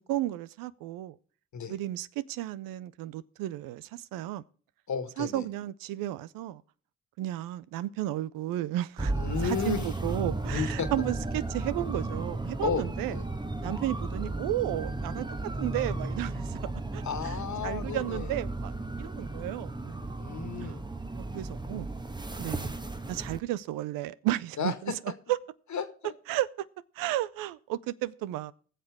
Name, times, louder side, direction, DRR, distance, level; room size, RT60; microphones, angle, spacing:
voice 1, 0.1-1.1 1.7-4.4 5.2-6.6 7.2-9.1 9.4-13.1 13.6-15.3 15.6-16.6 16.9-17.4 17.6-20.1 20.6-20.8 21.2-21.9 22.3-22.8 23.1-24.9 25.3-25.4 26.3-26.7 27.0-28.5, right 14 dB, 85° right, 0.5 m, -33 dB
voice 2, 4.9-5.4 9.1-9.9 10.5-10.9 12.6-12.8 13.1-13.2 17.0-18.3 20.2-20.8 24.6-25.0 25.7-26.1, left 6 dB, 60° left, 1.8 m, -33 dB
sound 1, 9.0-23.4, right 2 dB, 15° right, 1.2 m, -34 dB
20.0 x 6.7 x 3.5 m
supercardioid pair, 45°, 33 cm